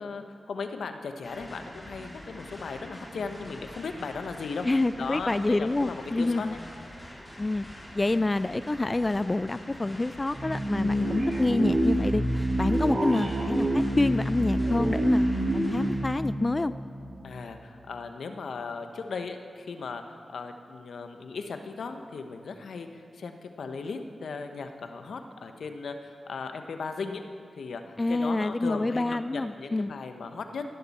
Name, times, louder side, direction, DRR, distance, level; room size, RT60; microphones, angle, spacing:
voice 1, 0.0-4.7 5.0-6.6 17.2-27.2 27.6-30.6, left 4 dB, 85° left, 7 dB, 0.9 m, -37 dB
sound 1, 1.2-16.0, equal, 15° left, 4.3 m, -45 dB
voice 2, 4.6-6.5 7.4-7.7 7.9-15.3 15.5-16.7 28.0-29.9, left 2 dB, 30° left, 14 dB, 0.3 m, -27 dB
sound 2, 10.3-17.5, right 1 dB, 55° right, 2.1 m, -27 dB
18.0 x 11.5 x 4.2 m, 2.3 s
cardioid pair, 45°, 0 cm